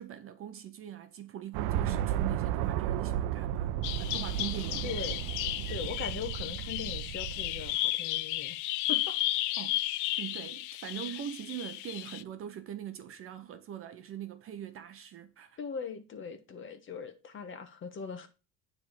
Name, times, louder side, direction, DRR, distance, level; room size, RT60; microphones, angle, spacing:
voice 1, 0.0-3.7 4.0-4.9 9.6-15.6, right 10 dB, 35° right, 0.7 m, -42 dB
sound 1, 1.5-7.8, right 11 dB, 65° right, 0.7 m, -33 dB
Bird vocalization bird call bird song, 3.8-12.2, left 16 dB, 50° left, 0.5 m, -34 dB
voice 2, 4.8-5.2 5.7-8.6 8.9-9.1 15.6-18.3, left 6 dB, 30° left, 1.2 m, -40 dB
9.5 x 3.6 x 6.5 m
cardioid pair, 150°, 39 cm